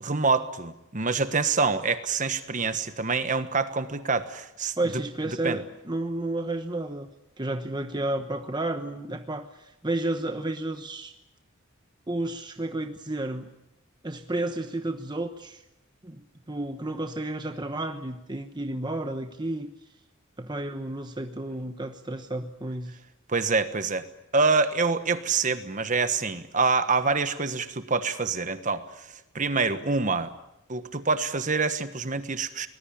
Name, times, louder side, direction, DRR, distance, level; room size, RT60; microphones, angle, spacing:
voice 1, 0.0-4.8 5.4-5.6 23.3-24.1 24.3-30.3 30.7-32.7, right 4 dB, 35° right, 10 dB, 1.3 m, -26 dB
voice 2, 4.8-7.1 7.4-11.1 12.1-13.5 14.0-15.6 16.0-19.7 20.4-23.0, right 2 dB, 20° right, 6 dB, 1.0 m, -31 dB
24.5 x 20.0 x 8.8 m, 0.88 s
head